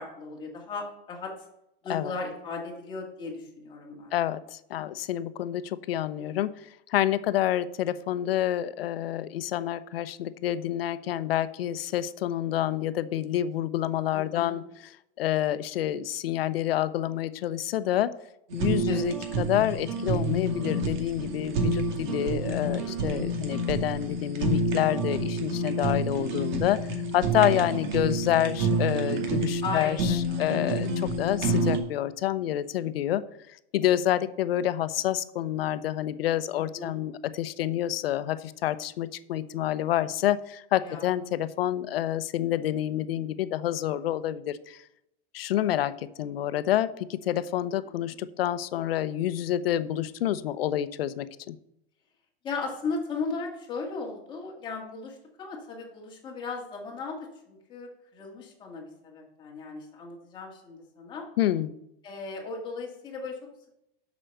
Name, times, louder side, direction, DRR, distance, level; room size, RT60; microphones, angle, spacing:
voice 1, 0.0-1.3 1.8-4.1 14.1-14.6 18.9-19.1 22.8-23.3 29.6-30.6 36.6-37.0 40.8-41.1 47.8-48.1 52.4-57.2 57.5-61.3 62.0-63.4, left 4 dB, 15° left, -1 dB, 1.9 m, -37 dB
voice 2, 4.1-6.6 6.9-14.6 15.2-18.1 18.5-26.9 27.1-33.2 33.7-44.8 45.3-51.6 61.4-61.7, left 12 dB, 85° left, 14 dB, 0.8 m, -28 dB
Fire, 18.5-31.8, right 2 dB, 50° right, 2.2 m, -28 dB
7.9 x 6.2 x 6.5 m, 0.82 s
supercardioid pair, 175°, 29 cm